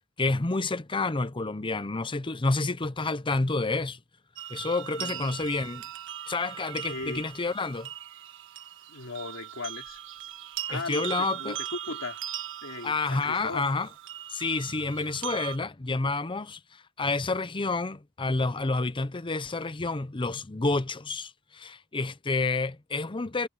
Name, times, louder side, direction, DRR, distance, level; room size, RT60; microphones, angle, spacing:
voice 1, 0.2-4.0 4.5-5.8 6.3-7.9 10.7-11.6 12.8-13.9 14.3-16.6 17.0-23.5, left 3 dB, 25° left, 0.7 m, -29 dB
sound 1, 4.4-15.6, right 11 dB, 65° right, 1.6 m, -39 dB
voice 2, 5.0-5.3 6.9-7.2 8.9-10.0 10.7-12.2 12.6-13.6, left 3 dB, 70° left, 2.9 m, -38 dB
head